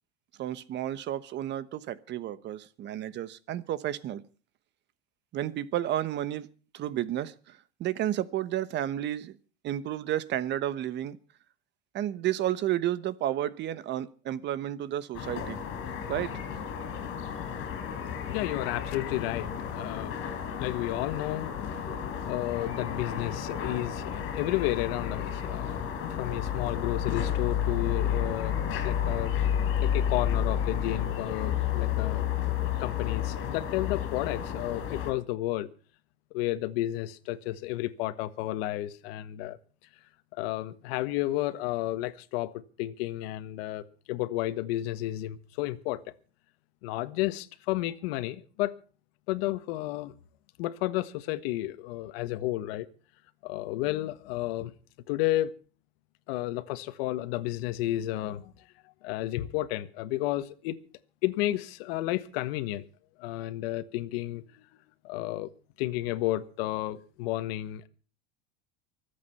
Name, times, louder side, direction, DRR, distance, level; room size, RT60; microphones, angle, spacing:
voice 1, 0.4-4.2 5.3-6.5 6.7-9.4 9.6-11.2 11.9-15.6 16.1-16.3, right 12 dB, 35° right, 1.1 m, -31 dB
sound 1, 15.1-35.1, left 9 dB, 40° left, 5.3 m, -31 dB
voice 2, 18.2-29.4 29.8-32.3 32.8-35.7 36.3-39.6 40.3-46.1 46.8-48.7 49.3-50.1 50.6-52.9 53.4-54.7 55.1-55.5 56.3-58.5 59.0-60.8 61.2-62.8 63.2-64.7 65.0-65.5 65.8-67.9, left 16 dB, 70° left, 1.5 m, -32 dB
24.5 x 8.6 x 5.7 m
supercardioid pair, 145°, 31 cm